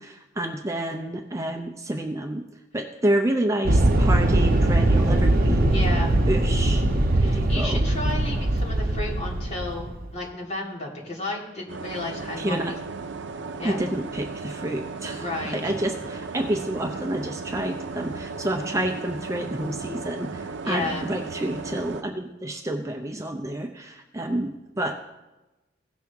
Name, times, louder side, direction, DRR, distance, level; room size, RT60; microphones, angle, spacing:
voice 1, 0.0-2.4 2.7-5.8 6.3-6.8 7.3-8.0 12.4-12.8 13.6-24.9, right 1 dB, 15° right, 3 dB, 0.6 m, -29 dB
sound 1, 3.6-10.1, right 1 dB, 50° right, 0.9 m, -21 dB
voice 2, 5.7-6.1 7.2-12.8 13.6-13.8 15.2-15.7 20.6-21.1, left 2 dB, 35° left, -4 dB, 2.3 m, -33 dB
sound 2, 11.7-22.0, right 4 dB, 70° right, 0.6 m, -36 dB
16.5 x 6.2 x 3.5 m, 1.0 s
head